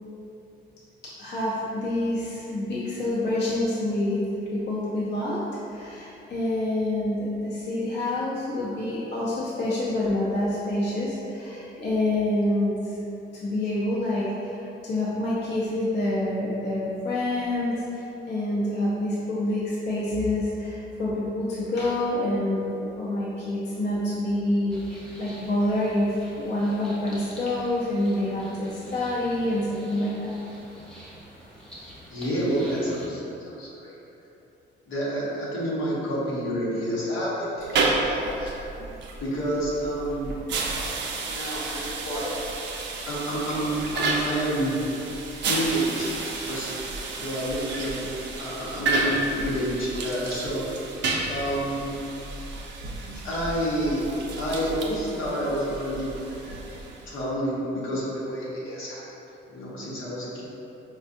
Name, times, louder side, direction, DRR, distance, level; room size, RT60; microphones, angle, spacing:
voice 1, 1.2-4.3 4.5-5.4 5.7-13.0 13.3-30.3, left 1 dB, 60° left, -8 dB, 0.7 m, -27 dB
sound 1, 24.7-33.1, equal, 5° left, 0.7 m, -46 dB
voice 2, 32.1-34.0 34.9-38.5 39.2-40.5 40.7-42.4 43.1-45.1 45.4-46.1 46.5-46.8 47.2-48.1 48.4-50.6 51.2-52.0 53.0-54.1 54.3-56.8 57.1-59.0 59.5-60.4, equal, 85° left, -8 dB, 1.0 m, -29 dB
sound 2, 37.6-57.2, right 3 dB, 65° right, 0.5 m, -31 dB
4.5 x 2.3 x 2.6 m, 2.8 s
cardioid pair, 90°, 20 cm